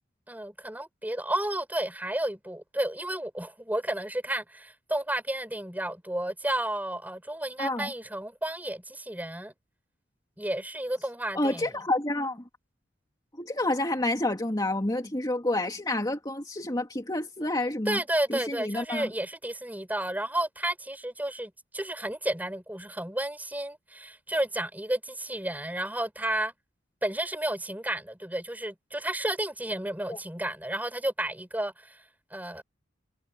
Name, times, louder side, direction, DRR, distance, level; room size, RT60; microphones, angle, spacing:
voice 1, 0.3-9.5 10.4-11.8 17.9-26.5 27.0-32.0 32.3-32.6, right 1 dB, 10° right, 7.9 m, -32 dB
voice 2, 7.6-7.9 11.3-12.4 13.4-18.0 18.3-19.1 30.1-30.2, left 1 dB, 20° left, 2.5 m, -29 dB
head